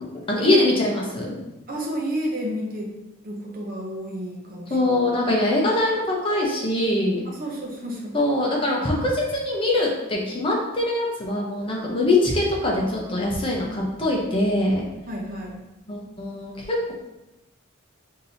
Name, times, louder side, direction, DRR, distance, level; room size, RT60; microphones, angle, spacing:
voice 1, 0.3-1.4 4.7-7.2 8.1-14.8 15.9-16.9, left 1 dB, 25° left, -2 dB, 0.7 m, -23 dB
voice 2, 1.7-2.9 3.2-4.9 7.2-8.1 15.1-15.6, right 1 dB, 45° right, -1 dB, 0.7 m, -31 dB
6.0 x 2.8 x 2.6 m, 0.96 s
head